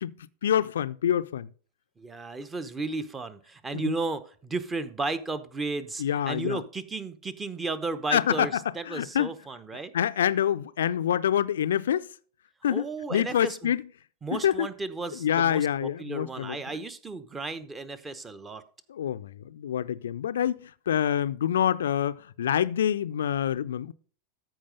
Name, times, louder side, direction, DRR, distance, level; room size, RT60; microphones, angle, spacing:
voice 1, 0.0-1.5 3.7-3.9 6.0-6.6 8.1-8.5 8.9-9.3 9.9-12.1 12.6-12.8 13.1-13.8 14.4-14.7 15.2-16.6 18.9-23.9, left 10 dB, 65° left, 0.5 m, -26 dB
voice 2, 2.0-9.9 12.7-13.7 14.2-18.6, right 3 dB, 15° right, 0.9 m, -34 dB
14.0 x 5.0 x 5.2 m
figure-of-eight pair, 90°, 0 cm